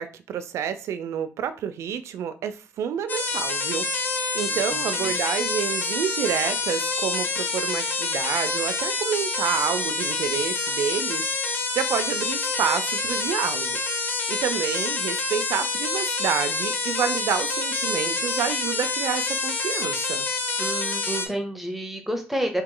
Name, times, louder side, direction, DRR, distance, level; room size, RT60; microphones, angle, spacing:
voice 1, 0.0-3.9 4.3-13.8 14.0-20.3, right 8 dB, 75° right, 11 dB, 0.4 m, -29 dB
sound 1, 3.1-21.3, left 3 dB, 40° left, 0.6 m, -27 dB
voice 2, 4.5-5.1 20.6-22.6, right 1 dB, 5° right, 5 dB, 0.6 m, -30 dB
2.9 x 2.8 x 3.7 m, 0.34 s
cardioid pair, 135°, 5 cm